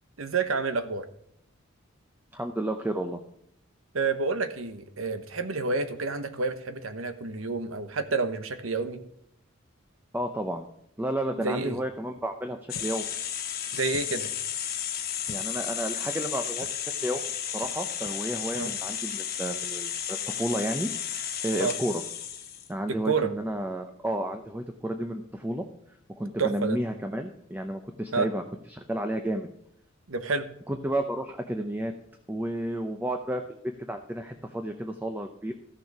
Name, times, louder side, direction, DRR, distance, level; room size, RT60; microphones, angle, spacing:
voice 1, 0.2-1.0 3.9-9.0 11.4-11.8 13.7-14.3 18.5-18.7 21.6-21.7 23.0-23.3 26.4-26.8 28.1-28.3 30.1-30.5, right 4 dB, 90° right, 10 dB, 1.1 m, -29 dB
voice 2, 2.3-3.2 10.1-10.7 11.0-13.1 15.3-17.3 17.5-22.0 22.7-25.7 26.2-28.4 28.7-29.5 30.7-31.9 32.3-35.5, right 1 dB, 10° right, 6 dB, 0.7 m, -32 dB
sound 1, 12.7-13.1 13.9-14.3 15.2-15.5 16.6-16.8 17.6-17.8 18.0-18.2 18.6-18.7, left 4 dB, 75° left, 0.7 m, -47 dB
sound 2, 12.7-22.7, left 9 dB, 50° left, 1.4 m, -33 dB
14.0 x 6.8 x 4.8 m, 0.73 s
head